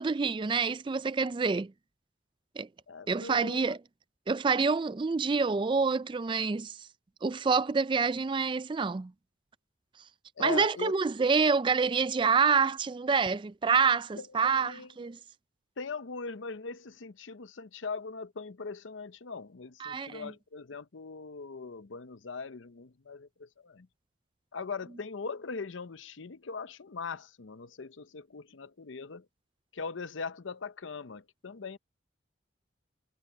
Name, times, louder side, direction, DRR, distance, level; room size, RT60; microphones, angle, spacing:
voice 1, 0.0-1.7 2.6-2.7 3.1-3.8 4.3-6.8 7.2-9.1 10.4-15.2 19.8-20.3, right 5 dB, 25° right, 0.3 m, -27 dB
voice 2, 2.9-3.7 10.4-10.9 14.2-14.9 15.8-23.9 24.5-29.3 29.7-31.8, left 4 dB, 80° left, 0.7 m, -40 dB
head